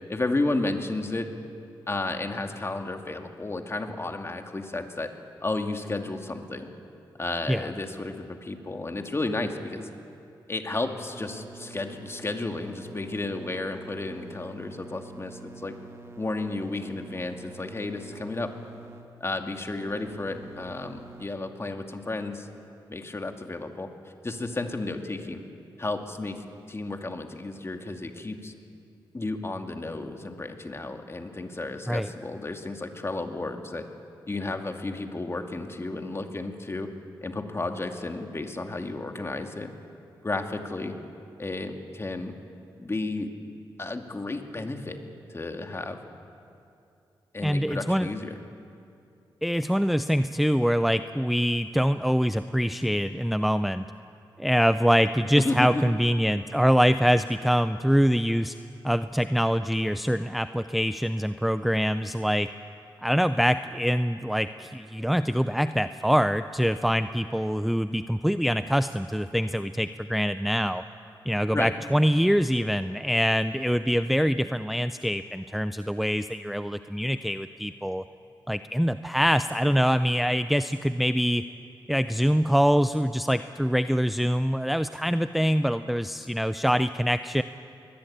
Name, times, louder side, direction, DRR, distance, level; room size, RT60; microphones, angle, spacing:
voice 1, 0.1-1.3 1.9-5.1 5.4-6.7 7.2-9.9 10.5-15.7 16.2-18.5 19.2-22.5 22.9-23.9 24.2-25.4 25.8-28.5 29.1-33.8 34.3-36.9 37.2-39.7 40.2-41.0 41.4-42.3 42.8-43.3 43.8-45.0 45.3-46.0 47.3-48.3 55.4-55.8 71.5-71.7, left 2 dB, 30° left, 5 dB, 2.3 m, -32 dB
sound 1, 11.1-21.3, right 3 dB, 30° right, 1.9 m, -47 dB
voice 2, 47.4-48.1 49.4-53.9 54.4-58.5 58.8-62.5 63.0-70.8 71.3-78.0 78.5-81.4 81.9-87.4, equal, ahead, 11 dB, 0.5 m, -24 dB
21.5 x 21.0 x 8.8 m, 2.6 s
cardioid pair, 65°, 9 cm